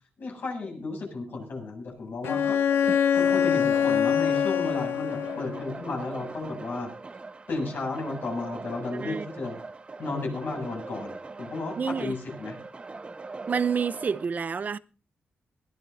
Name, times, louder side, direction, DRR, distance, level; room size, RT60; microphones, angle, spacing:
voice 1, 0.2-2.6 3.2-6.9 7.5-9.5 10.0-12.6, left 3 dB, 60° left, 7.9 m, -33 dB
Bowed string instrument, 2.2-5.8, left 8 dB, 80° left, 0.9 m, -24 dB
sound 1, 2.2-14.3, right 3 dB, 30° right, 1.1 m, -41 dB
voice 2, 8.9-9.3 11.8-12.1 13.5-14.8, right 6 dB, 45° right, 0.6 m, -28 dB
21.5 x 16.5 x 2.7 m
cardioid pair, 105°, 4 cm